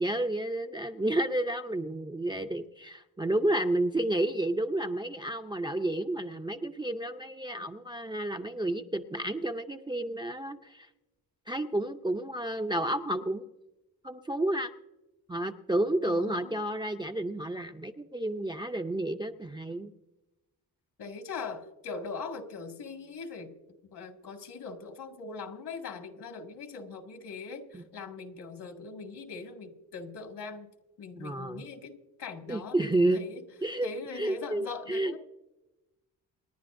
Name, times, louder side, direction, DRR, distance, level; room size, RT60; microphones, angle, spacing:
voice 1, 0.0-10.9 11.5-13.5 14.0-14.7 15.3-19.9 27.7-27.8 31.1-31.6 32.5-33.2 33.6-33.9 34.2-35.2, right 1 dB, 10° right, 6 dB, 0.4 m, -31 dB
voice 2, 16.0-16.7 21.0-23.6 23.8-30.7 31.0-33.4 33.8-35.2, left 4 dB, 80° left, 4 dB, 2.1 m, -41 dB
28.0 x 10.5 x 2.5 m, 0.99 s
wide cardioid pair, 155°, 39 cm